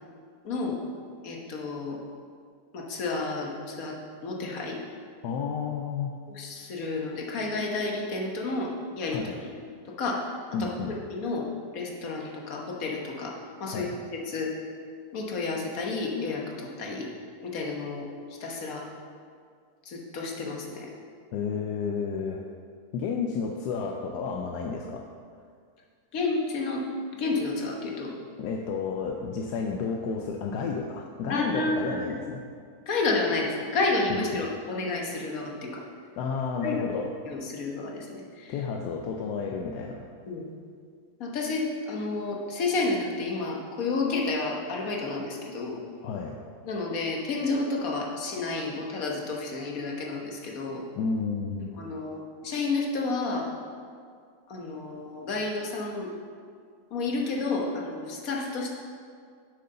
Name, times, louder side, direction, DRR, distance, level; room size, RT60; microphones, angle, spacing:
voice 1, 0.4-0.8 1.2-2.0 2.7-4.0 4.2-4.8 6.3-8.7 8.9-9.5 10.0-10.2 10.6-11.5 11.7-13.3 13.6-14.5 15.1-17.1 17.4-18.1 18.4-18.8 19.8-20.9 26.1-26.8 27.2-28.1 31.3-32.2 32.9-35.8 36.6-36.8 37.3-38.6 40.3-40.4 41.2-45.8 46.7-50.8 51.8-53.5 54.5-56.1 56.9-58.7, left 3 dB, 60° left, -1 dB, 1.6 m, -30 dB
voice 2, 5.2-6.1 9.1-9.4 10.5-11.0 13.7-14.0 21.3-22.5 22.9-25.1 28.4-32.4 34.1-34.4 36.2-37.1 38.5-40.1 46.0-46.4 51.0-51.7, left 5 dB, 80° left, 3 dB, 1.2 m, -31 dB
7.8 x 6.6 x 5.5 m, 2.1 s
omnidirectional pair, 1.8 m